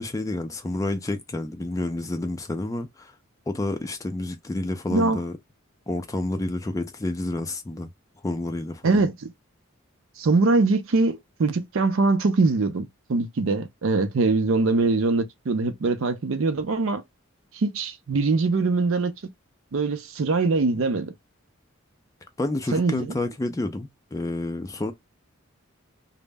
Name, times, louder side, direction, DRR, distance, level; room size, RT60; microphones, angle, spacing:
voice 1, 0.0-3.1 3.5-5.4 5.9-7.9 8.2-9.0 22.4-24.9, left 2 dB, 15° left, 0.3 m, -29 dB
voice 2, 8.8-9.3 10.2-17.0 17.5-19.1 19.7-21.1 22.7-23.1, right 3 dB, 65° right, 0.5 m, -23 dB
2.0 x 2.0 x 3.3 m
head